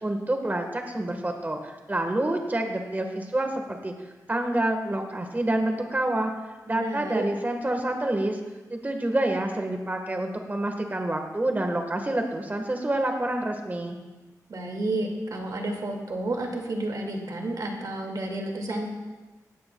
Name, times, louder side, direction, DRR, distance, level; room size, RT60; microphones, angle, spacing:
voice 1, 0.0-3.9 4.3-6.3 6.7-8.4 8.7-14.0, right 1 dB, 25° right, 3 dB, 1.4 m, -27 dB
voice 2, 6.7-7.2 14.5-18.9, right 2 dB, 70° right, 1 dB, 2.1 m, -31 dB
17.5 x 13.0 x 2.3 m, 1.2 s
cardioid pair, 60°, 7 cm